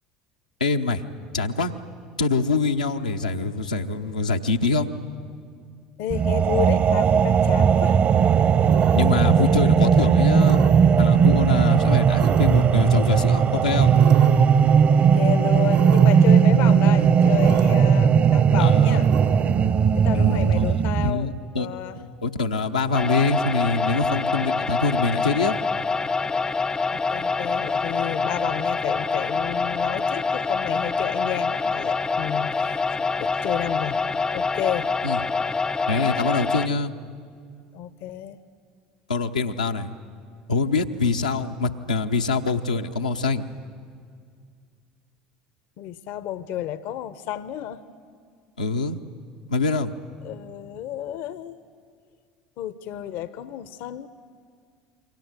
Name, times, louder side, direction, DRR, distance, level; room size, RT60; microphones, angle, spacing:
voice 1, 0.6-1.0 1.3-1.7 2.2-4.9 8.9-10.6 11.0-13.9 18.6-19.0 20.1-21.7 22.0-25.5 35.0-35.2 35.9-36.9 39.1-39.9 40.5-43.4 48.6-49.0 49.5-49.9, left 3 dB, 90° left, 3 dB, 1.0 m, -24 dB
voice 2, 6.0-8.0 14.9-19.1 19.9-21.3 21.6-22.0 26.9-32.8 33.2-34.0 34.3-34.9 37.7-38.4 45.8-47.8 50.2-51.6 52.6-54.1, left 11 dB, 60° left, 15 dB, 0.8 m, -31 dB
sound 1, 6.1-21.1, right 7 dB, 40° right, 1.1 m, -17 dB
sound 2, 8.7-9.3 10.4-11.0 12.2-12.8 13.9-14.6 15.7-16.3 17.3-18.0 19.0-19.7, right 8 dB, 80° right, 2.0 m, -35 dB
sound 3, 22.9-36.7, left 4 dB, 20° left, 0.6 m, -26 dB
28.5 x 24.0 x 8.2 m, 2.2 s
figure-of-eight pair, 65°, 4 cm